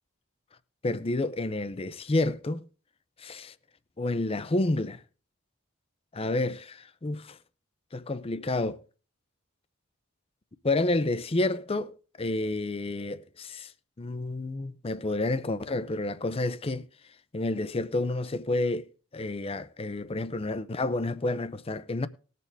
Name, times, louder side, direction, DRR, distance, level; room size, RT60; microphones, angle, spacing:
voice 1, 0.8-2.7 3.2-3.5 4.0-5.0 6.1-7.4 7.9-8.8 10.6-13.7 14.0-16.9 17.3-18.9 19.1-22.1, left 2 dB, 30° left, 0.5 m, -29 dB
19.5 x 6.8 x 3.4 m
head